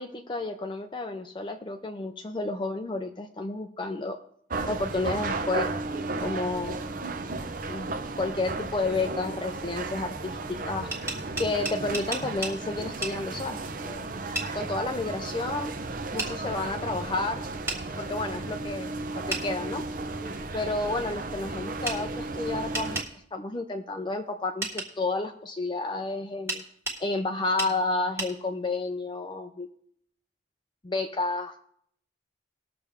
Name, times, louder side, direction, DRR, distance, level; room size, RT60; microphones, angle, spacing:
voice 1, 0.0-4.2 4.7-5.7 6.2-6.8 7.7-10.9 11.4-13.6 13.8-14.0 14.5-15.7 16.1-17.4 18.0-18.9 19.3-19.8 20.5-23.0 23.3-26.6 27.0-29.7 30.8-31.6, left 3 dB, 25° left, 5 dB, 0.5 m, -31 dB
sound 1, 4.5-23.0, right 3 dB, 45° right, 0.8 m, -34 dB
sound 2, 10.9-12.6 13.0-13.2 14.3-14.5 16.2-16.3 17.7-17.8 19.3-19.5 21.8-22.0 22.7-23.1 24.6-24.9 26.5-27.0 27.6-27.7 28.2-28.3, right 2 dB, 15° right, 1.6 m, -32 dB
19.5 x 6.8 x 3.5 m, 0.67 s
head